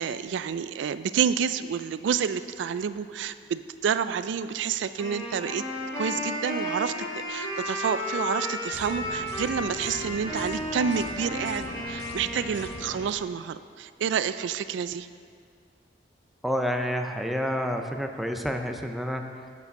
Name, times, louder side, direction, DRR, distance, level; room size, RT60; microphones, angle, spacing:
voice 1, 0.0-5.6 6.0-15.1, right 7 dB, 90° right, 13 dB, 0.3 m, -29 dB
Wind instrument woodwind instrument, 5.0-13.1, left 1 dB, 20° left, 2.4 m, -33 dB
sound 1, 8.7-13.1, left 2 dB, 65° left, 0.7 m, -41 dB
voice 2, 16.4-19.5, equal, ahead, 4 dB, 0.5 m, -29 dB
8.2 x 7.1 x 5.2 m, 2.1 s
head